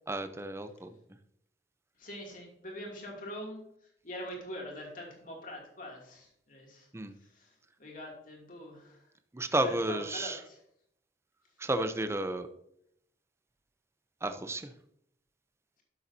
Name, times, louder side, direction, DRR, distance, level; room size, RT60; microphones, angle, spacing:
voice 1, 0.1-0.9 6.9-7.1 9.3-10.4 11.6-12.5 14.2-14.7, right 1 dB, 15° right, 9 dB, 0.6 m, -32 dB
voice 2, 2.0-3.6 4.0-6.8 7.8-8.9 9.6-10.6, equal, 50° left, 0 dB, 2.6 m, -43 dB
12.0 x 7.0 x 2.7 m, 0.74 s
head